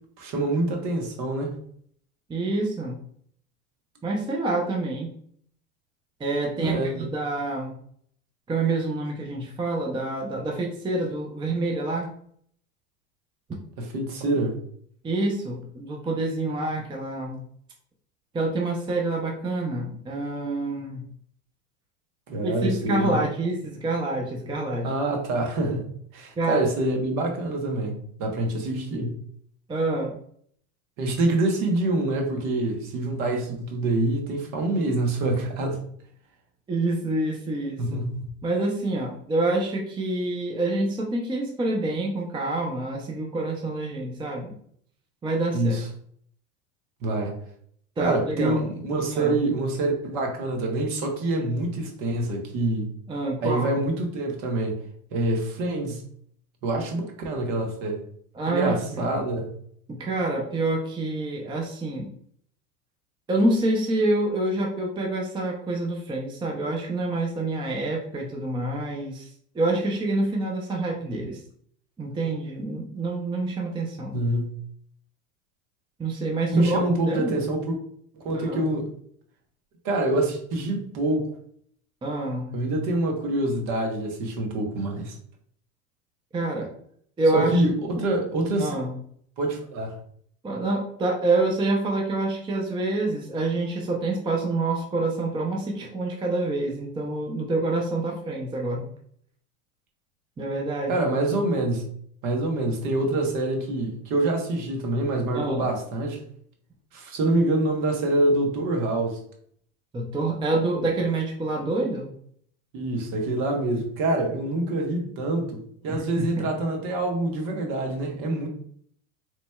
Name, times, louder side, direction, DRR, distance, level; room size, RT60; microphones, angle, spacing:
voice 1, 0.2-1.6 6.6-7.1 13.8-14.6 22.3-23.2 24.8-25.8 26.1-29.2 31.0-35.8 37.8-38.3 45.5-45.9 47.0-47.4 48.0-52.9 53.4-54.8 55.1-56.0 56.6-58.0 58.5-59.5 74.1-74.6 76.5-77.8 78.1-78.9 79.8-81.3 82.5-85.2 87.3-88.7 89.4-90.0 100.9-101.9 102.2-106.2 106.9-109.2 112.7-118.5, right 2 dB, 50° right, 3 dB, 1.2 m, -26 dB
voice 2, 2.3-3.0 4.0-5.1 6.2-7.7 8.5-12.1 15.0-17.4 18.3-21.0 22.4-24.9 26.4-26.7 29.7-30.2 36.7-37.8 38.4-44.5 45.2-45.8 48.0-48.6 49.1-49.4 53.1-53.8 58.3-59.2 59.9-62.1 63.3-69.3 69.5-71.4 72.0-74.2 76.0-77.3 78.3-78.7 82.0-82.5 86.3-86.7 87.2-87.6 87.9-88.0 88.6-88.9 90.4-98.9 100.4-101.0 105.3-105.7 109.9-112.1 116.2-116.5, right 2 dB, 10° right, 0 dB, 0.5 m, -27 dB
4.0 x 3.1 x 2.3 m, 0.63 s
hypercardioid pair, 100°, 41 cm